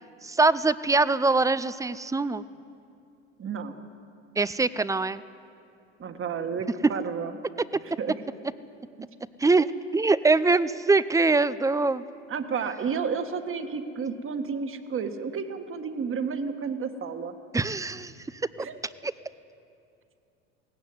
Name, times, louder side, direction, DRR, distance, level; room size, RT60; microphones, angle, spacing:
voice 1, 0.2-2.4 4.4-5.2 9.4-9.7 9.9-12.0 17.5-18.1 19.0-19.1, right 3 dB, 10° right, 16 dB, 0.5 m, -23 dB
voice 2, 3.4-3.8 6.0-7.4 7.8-8.2 12.3-17.3 18.6-18.8, right 6 dB, 35° right, 8 dB, 1.7 m, -31 dB
17.5 x 16.0 x 9.6 m, 2.6 s
hypercardioid pair, 85°, 36 cm